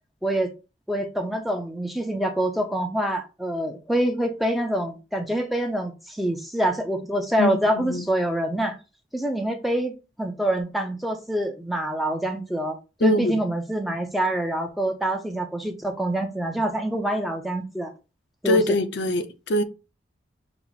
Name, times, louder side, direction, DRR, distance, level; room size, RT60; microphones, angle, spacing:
voice 1, 0.9-8.8 9.1-17.9 18.4-18.6, right 1 dB, ahead, 0.5 m, -26 dB
voice 2, 7.4-8.1 13.0-13.4 18.4-19.6, left 1 dB, 65° left, 0.5 m, -23 dB
5.8 x 2.0 x 3.9 m
head